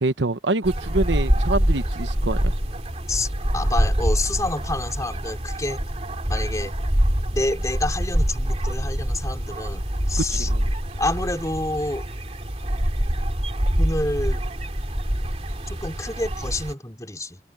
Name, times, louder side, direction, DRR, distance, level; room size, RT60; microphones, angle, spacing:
voice 1, 0.0-2.5 10.2-10.7, right 2 dB, 85° right, 1.1 m, -25 dB
sound 1, 0.6-16.7, equal, 35° right, 2.8 m, -25 dB
voice 2, 3.1-5.8 6.3-6.7 7.3-10.5 11.0-12.0 13.8-14.4 15.7-17.4, left 2 dB, 20° left, 4.2 m, -28 dB
head